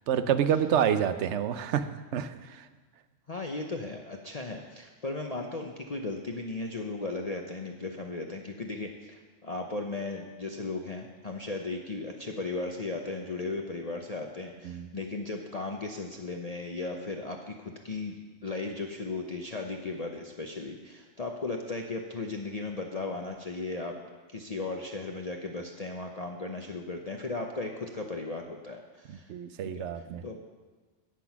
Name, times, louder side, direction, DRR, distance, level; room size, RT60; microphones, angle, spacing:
voice 1, 0.1-2.7 14.6-14.9 29.1-30.2, right 9 dB, 70° right, 11 dB, 1.0 m, -28 dB
voice 2, 3.3-18.2 18.4-23.9 24.3-29.3 29.7-29.9 30.2-30.4, left 3 dB, 35° left, 2 dB, 0.7 m, -36 dB
16.5 x 6.1 x 5.9 m, 1.3 s
omnidirectional pair, 1.3 m